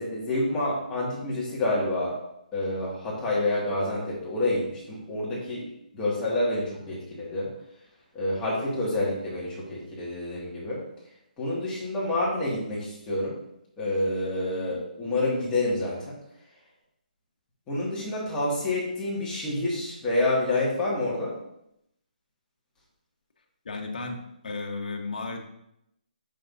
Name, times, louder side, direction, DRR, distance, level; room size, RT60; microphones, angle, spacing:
voice 1, 0.0-2.2 2.5-5.6 5.9-7.5 8.1-10.8 11.4-13.4 13.8-16.2 17.7-21.3, left 2 dB, 15° left, -7 dB, 2.0 m, -28 dB
voice 2, 23.6-25.4, left 3 dB, 65° left, 2 dB, 1.2 m, -34 dB
7.5 x 5.6 x 2.7 m, 0.80 s
hypercardioid pair, 155°, 5 cm